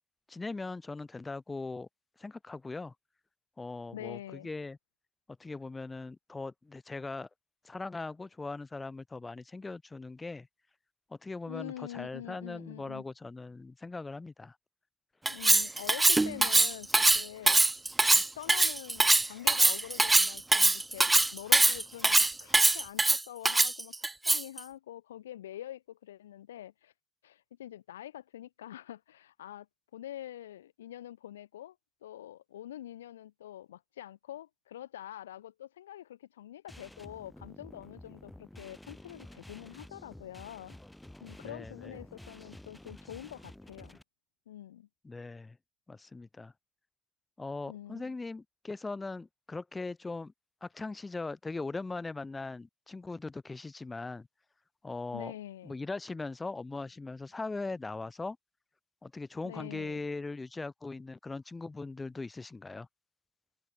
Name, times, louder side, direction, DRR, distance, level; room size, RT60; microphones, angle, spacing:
voice 1, 0.3-1.9 2.2-2.9 3.6-4.8 5.4-7.3 7.6-10.5 11.1-14.6 41.4-42.0 45.0-45.6 45.9-46.5 47.4-50.3 50.6-54.3 54.8-55.3 55.6-58.4 59.0-62.9, left 3 dB, 25° left, 5.6 m, -40 dB
voice 2, 3.9-4.5 11.5-13.0 15.2-26.9 27.2-29.7 29.9-31.8 32.0-40.8 41.2-44.0 44.5-44.9 47.7-48.2 55.1-55.8 59.4-60.0, left 12 dB, 85° left, 2.5 m, -45 dB
Cutlery silverware, 15.3-24.6, right 2 dB, 20° right, 0.7 m, -23 dB
sound 1, 36.7-44.0, left 1 dB, 10° left, 7.4 m, -51 dB
hypercardioid pair, 50°, 0 cm